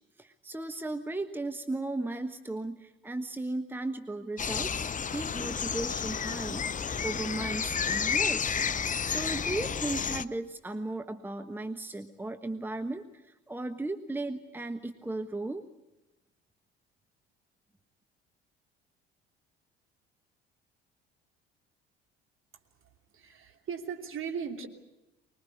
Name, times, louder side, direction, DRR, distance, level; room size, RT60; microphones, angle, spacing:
voice 1, 0.2-8.6 9.0-15.6, right 2 dB, 5° right, 8 dB, 1.2 m, -36 dB
sound 1, 4.4-10.2, left 6 dB, 25° left, 0.8 m, -31 dB
voice 2, 22.8-24.7, right 6 dB, 40° right, 3 dB, 3.1 m, -38 dB
24.5 x 21.0 x 8.4 m, 1.0 s
figure-of-eight pair, 55°, 30 cm